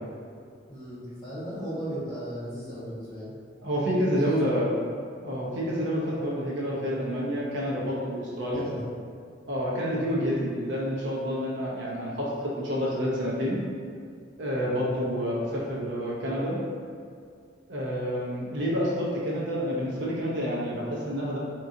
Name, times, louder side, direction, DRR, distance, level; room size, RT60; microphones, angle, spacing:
voice 1, 0.7-3.3 4.1-4.5 8.5-8.9, equal, 20° left, -12 dB, 1.4 m, -35 dB
voice 2, 3.6-4.7 5.2-8.7 9.5-13.6 14.4-16.6 17.7-21.4, equal, 75° right, -5 dB, 0.7 m, -28 dB
3.6 x 2.9 x 2.6 m, 2.2 s
head